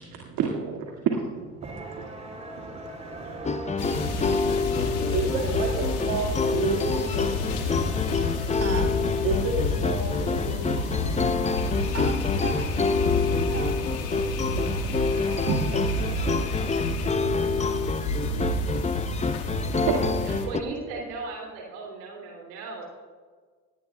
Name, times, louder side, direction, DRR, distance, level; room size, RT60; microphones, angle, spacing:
voice 1, 0.0-1.6 2.7-2.8 3.2-3.8 4.2-4.5 4.9-8.2 9.2-11.4 11.6-11.9 13.1-13.3 14.2-16.2 16.5-17.2 17.6-17.8 18.2-18.5 18.8-20.3, right 5 dB, 65° right, -1 dB, 2.2 m, -32 dB
sound 1, 1.6-16.8, right 2 dB, 20° right, 3.5 m, -40 dB
voice 2, 1.6-2.9 8.2-8.9 11.9-12.7 13.3-13.8, right 4 dB, 40° right, 3 dB, 4.6 m, -37 dB
sound 2, 3.4-20.6, left 4 dB, 20° left, 0.7 m, -28 dB
sound 3, 3.8-20.5, left 3 dB, 75° left, 2.0 m, -29 dB
voice 3, 20.2-22.9, right 3 dB, 80° right, 0 dB, 3.0 m, -36 dB
19.0 x 17.5 x 2.3 m, 1.5 s
hypercardioid pair, 65°, 38 cm